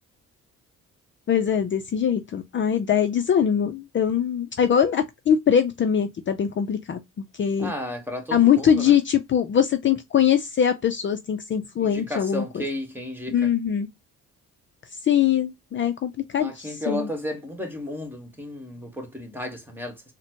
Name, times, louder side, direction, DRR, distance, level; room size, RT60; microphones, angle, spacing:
voice 1, 1.3-7.7 8.3-12.6 13.3-13.9 15.0-17.1, left 8 dB, 40° left, 0.5 m, -22 dB
voice 2, 7.6-8.9 11.8-13.4 16.4-20.0, left 1 dB, 5° right, 1.3 m, -33 dB
4.0 x 2.1 x 2.8 m
cardioid pair, 90°, 30 cm